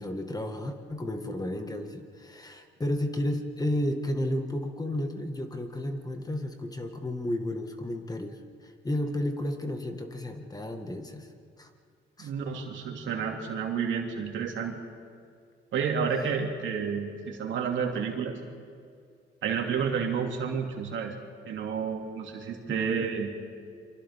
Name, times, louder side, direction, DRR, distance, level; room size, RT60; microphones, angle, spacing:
voice 1, 0.0-11.3 11.6-11.7 12.2-12.3 22.7-23.0, left 1 dB, 20° left, 5 dB, 1.8 m, -32 dB
voice 2, 12.2-14.8 15.7-18.3 19.4-21.1 21.5-23.3, right 6 dB, 75° right, 1 dB, 2.8 m, -30 dB
29.0 x 24.5 x 3.7 m, 2.2 s
cardioid pair, 90°, 20 cm